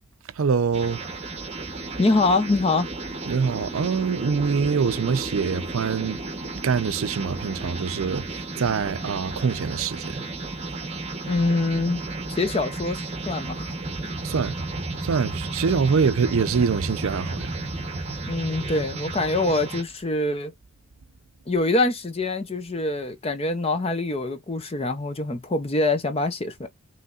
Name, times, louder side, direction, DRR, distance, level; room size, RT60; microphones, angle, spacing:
voice 1, 0.3-1.2 3.3-10.3 14.2-14.6 15.0-17.6, right 5 dB, 70° right, 0.4 m, -25 dB
sound 1, 0.7-19.8, right 2 dB, 30° right, 0.8 m, -33 dB
voice 2, 2.0-2.9 11.3-12.0 12.3-13.7 14.0-14.1 18.2-20.5 21.5-26.7, left 2 dB, 25° left, 0.5 m, -24 dB
5.5 x 3.2 x 2.4 m
head